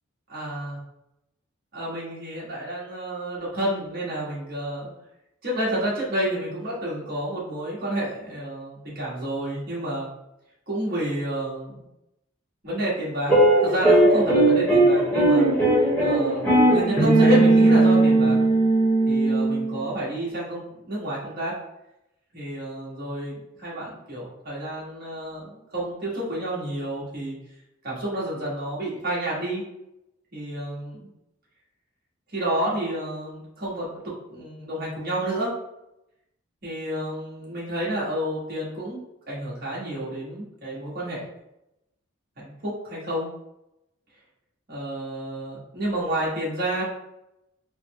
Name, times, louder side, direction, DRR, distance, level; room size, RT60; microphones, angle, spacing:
voice 1, 0.3-0.8 1.7-4.9 5.4-10.1 10.7-11.8 12.6-13.3 13.6-15.4 16.0-18.4 19.1-21.6 22.3-27.3 27.8-29.6 30.3-31.1 32.3-35.5 36.6-39.0 39.3-41.3 42.4-43.3 44.7-46.8, right 1 dB, 45° right, -7 dB, 1.4 m, -30 dB
sound 1, 13.3-19.8, right 2 dB, 10° left, 1.0 m, -18 dB
4.1 x 2.1 x 3.0 m, 0.86 s
head